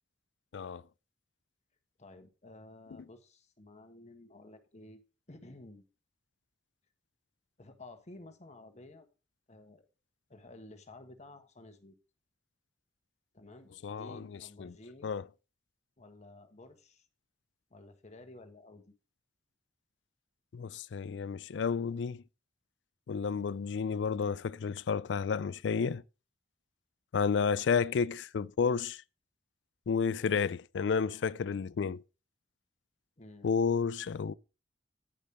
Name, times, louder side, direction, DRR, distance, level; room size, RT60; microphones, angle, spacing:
voice 1, 2.0-5.0 5.3-5.8 7.6-9.1 9.5-9.9 10.3-12.0 13.3-15.1 16.0-17.0 17.7-18.9 33.2-33.5, left 2 dB, 40° left, 1.4 m, -53 dB
voice 2, 13.8-14.3 14.6-14.7 15.0-15.2 20.5-22.2 23.1-26.0 27.1-29.0 29.9-32.0 33.4-34.3, left 6 dB, 85° left, 0.4 m, -31 dB
10.0 x 5.3 x 5.3 m
head